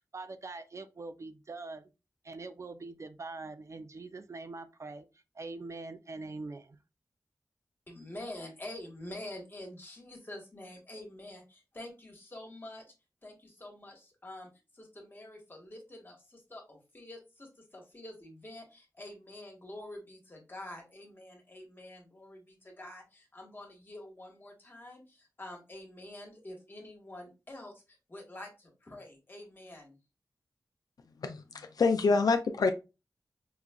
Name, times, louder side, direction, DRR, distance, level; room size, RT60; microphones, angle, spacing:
voice 1, 0.0-1.9 2.2-5.1 5.3-6.8, right 3 dB, 45° right, 9 dB, 0.4 m, -43 dB
voice 2, 7.9-12.9 13.2-30.0, left 1 dB, 30° left, 1 dB, 1.3 m, -47 dB
voice 3, 31.2-32.7, left 4 dB, 70° left, 7 dB, 0.4 m, -26 dB
4.9 x 2.3 x 2.2 m, 0.28 s
wide cardioid pair, 95°, 7 cm